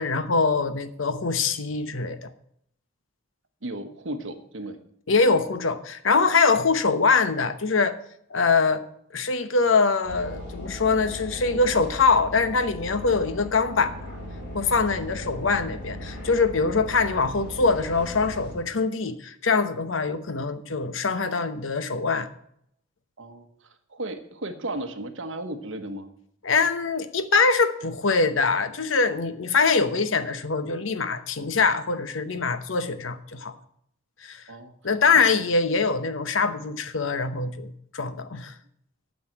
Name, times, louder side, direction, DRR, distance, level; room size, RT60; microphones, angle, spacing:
voice 1, 0.0-2.3 5.1-7.9 8.3-8.8 9.1-13.9 14.5-22.3 26.4-33.5 34.2-34.4 34.8-38.5, left 4 dB, 80° left, 11 dB, 0.9 m, -23 dB
voice 2, 3.6-4.8 23.2-23.5 23.9-26.1 34.5-34.7 35.2-35.3, right 1 dB, 75° right, 6 dB, 1.2 m, -34 dB
sound 1, 10.0-18.5, equal, 60° left, 4.2 m, -38 dB
9.3 x 6.5 x 7.6 m, 0.71 s
head